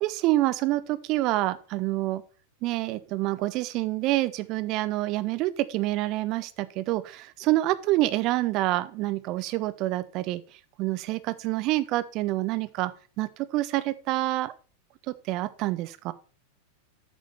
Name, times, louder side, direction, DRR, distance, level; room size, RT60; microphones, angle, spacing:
voice 1, 0.0-2.2 2.6-10.4 10.8-12.9 13.2-14.5 15.3-16.1, right 17 dB, 40° right, 14 dB, 0.6 m, -27 dB
8.6 x 5.2 x 5.5 m, 0.37 s
figure-of-eight pair, 90°, 0 cm